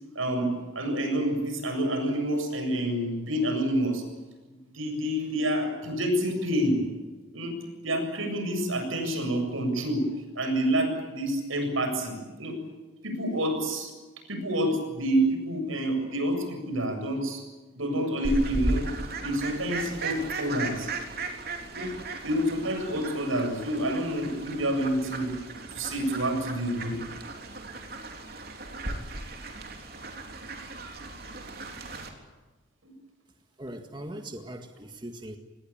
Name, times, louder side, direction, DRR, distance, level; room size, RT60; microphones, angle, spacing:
voice 1, 0.2-4.0 4.7-6.8 7.3-7.6 7.8-10.0 10.4-12.6 13.0-13.9 14.3-17.4 17.7-18.9 19.2-20.9 21.7-21.9 22.2-25.3 25.7-27.0, right 1 dB, 85° right, 6 dB, 7.5 m, -28 dB
Fowl, 18.2-32.1, right 2 dB, 50° right, 3.7 m, -36 dB
voice 2, 33.6-35.4, right 1 dB, 20° right, 5 dB, 1.8 m, -40 dB
26.0 x 20.0 x 8.8 m, 1.2 s
head